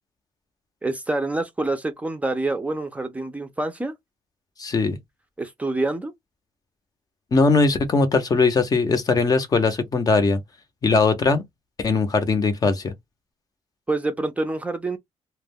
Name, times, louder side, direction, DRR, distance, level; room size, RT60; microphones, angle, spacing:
voice 1, 0.8-3.9 5.4-6.1 13.9-15.0, right 2 dB, 10° right, 0.5 m, -26 dB
voice 2, 4.6-5.0 7.3-10.4 10.8-11.4 11.8-12.9, left 4 dB, 35° left, 0.6 m, -20 dB
2.3 x 2.1 x 3.4 m
cardioid pair, 130°, 11 cm